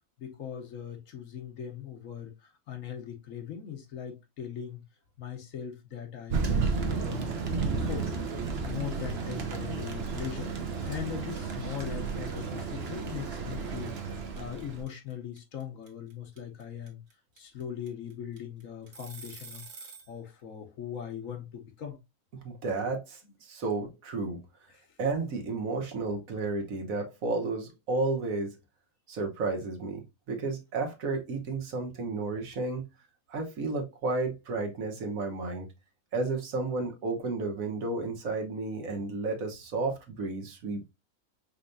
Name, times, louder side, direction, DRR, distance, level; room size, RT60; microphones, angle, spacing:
voice 1, 0.2-4.8 5.2-8.3 8.6-10.5 10.8-17.0 17.4-22.0 24.7-24.9, left 8 dB, 65° left, 1.2 m, -40 dB
Thunder, 6.3-14.8, right 5 dB, 50° right, 0.9 m, -32 dB
sound 1, 8.9-9.1 9.4-20.1, right 4 dB, 90° right, 1.7 m, -48 dB
voice 2, 22.4-24.4 25.0-28.6 29.1-32.8 33.3-35.7 36.1-40.9, right 3 dB, 65° right, 1.4 m, -32 dB
5.4 x 3.3 x 2.6 m
omnidirectional pair, 1.6 m